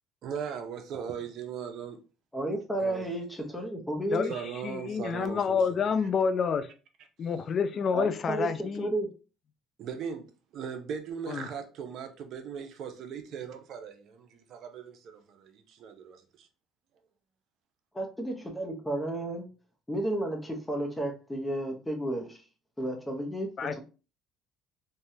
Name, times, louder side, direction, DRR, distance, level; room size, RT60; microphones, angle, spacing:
voice 1, 0.2-2.0 2.8-3.1 4.3-5.6 9.8-16.5, right 7 dB, 60° right, 0.6 m, -39 dB
voice 2, 2.3-4.3 7.9-9.1 17.9-19.5 19.9-22.4 22.8-23.5, right 1 dB, 10° left, 0.7 m, -32 dB
voice 3, 4.6-6.7 7.2-8.9 11.3-11.5 23.6-23.8, left 6 dB, 45° left, 0.3 m, -28 dB
3.3 x 2.2 x 2.7 m
cardioid pair, 105°, 0 cm